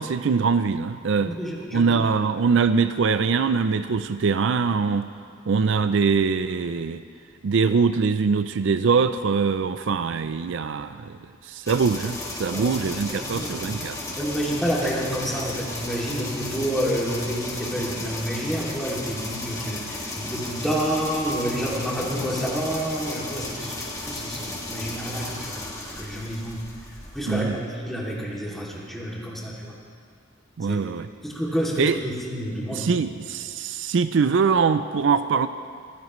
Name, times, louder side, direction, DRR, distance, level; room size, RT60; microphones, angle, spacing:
voice 1, 0.0-1.4 1.7-5.1 5.5-7.0 7.4-11.2 11.5-14.0 27.3-27.6 30.6-31.1 31.8-32.0 32.7-35.5, right 5 dB, 65° right, 11 dB, 0.4 m, -23 dB
voice 2, 1.2-2.1 12.5-13.6 14.2-25.6 25.9-29.7 30.6-30.8 31.2-33.0, equal, ahead, -5 dB, 2.6 m, -29 dB
sound 1, 11.7-27.4, left 2 dB, 15° left, 2.0 m, -34 dB
23.0 x 15.5 x 3.1 m, 2.3 s
head